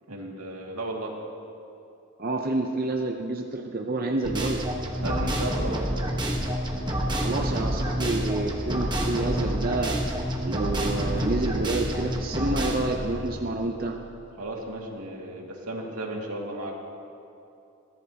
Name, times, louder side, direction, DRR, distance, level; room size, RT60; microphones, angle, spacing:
voice 1, 0.1-1.1 5.0-5.9 14.4-16.8, right 1 dB, 85° right, -1 dB, 2.3 m, -34 dB
voice 2, 2.2-4.6 7.2-10.2 10.4-14.0, right 2 dB, 40° right, 2 dB, 0.7 m, -28 dB
sound 1, 4.2-14.2, equal, 20° right, 1.2 m, -28 dB
22.0 x 15.0 x 2.9 m, 2.7 s
head